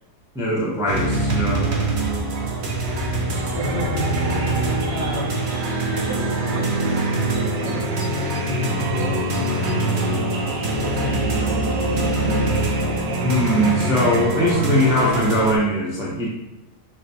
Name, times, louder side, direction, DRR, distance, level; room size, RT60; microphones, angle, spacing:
voice 1, 0.3-1.8 13.2-16.3, equal, 5° right, -6 dB, 0.4 m, -21 dB
sound 1, 0.9-15.6, right 2 dB, 60° right, 0.7 m, -24 dB
voice 2, 3.0-4.1 4.5-5.5 5.9-11.5, left 2 dB, 40° left, -8 dB, 0.6 m, -32 dB
sound 2, 3.6-14.3, right 2 dB, 85° right, 1.2 m, -31 dB
5.8 x 2.2 x 2.8 m, 1.0 s
omnidirectional pair, 1.7 m